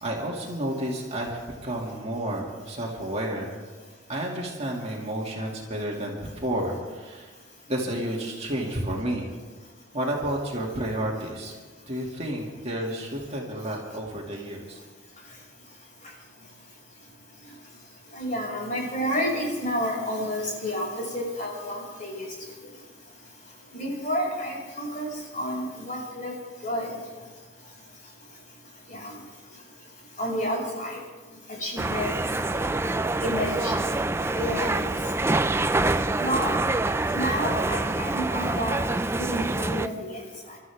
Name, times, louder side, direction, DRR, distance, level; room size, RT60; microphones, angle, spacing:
voice 1, 0.0-3.5 4.1-7.3 7.7-9.3 9.9-11.5 11.8-14.8, right 1 dB, 35° right, -2 dB, 2.4 m, -31 dB
voice 2, 18.1-22.3 23.7-25.1 25.3-26.3 26.6-26.9 28.9-29.1 30.2-31.0 31.6-32.2 33.2-33.7 34.3-34.8 36.2-36.6 37.1-38.8 39.2-40.3, equal, 45° left, -3 dB, 6.1 m, -30 dB
sound 1, 31.8-39.9, right 2 dB, 15° right, 0.4 m, -26 dB
29.0 x 13.0 x 3.6 m, 1.3 s
head